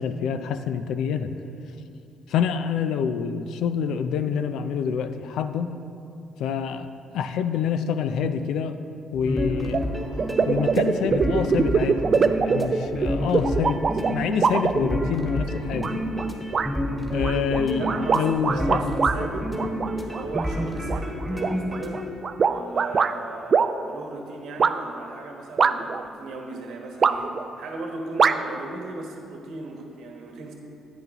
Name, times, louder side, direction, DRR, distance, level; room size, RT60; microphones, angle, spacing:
voice 1, 0.0-1.3 2.3-5.7 6.4-6.9 7.1-8.8 9.1-9.9 10.5-12.0 12.4-15.9 17.1-18.8, left 7 dB, 80° left, 9 dB, 0.4 m, -27 dB
sound 1, 9.1-22.0, equal, 5° right, 1.6 m, -29 dB
sound 2, 9.7-9.8 10.2-15.3 15.8-16.3 16.5-16.7 17.2-19.2 19.6-20.5 20.9-23.1 23.5-23.7 24.6-24.7 25.6-26.0 27.0-27.4 28.2-28.3, right 5 dB, 50° right, 0.3 m, -22 dB
voice 2, 17.8-19.5 20.0-22.0 22.5-30.5, right 3 dB, 80° right, 2 dB, 1.2 m, -37 dB
10.5 x 8.4 x 3.0 m, 2.6 s
supercardioid pair, 65°, 0 cm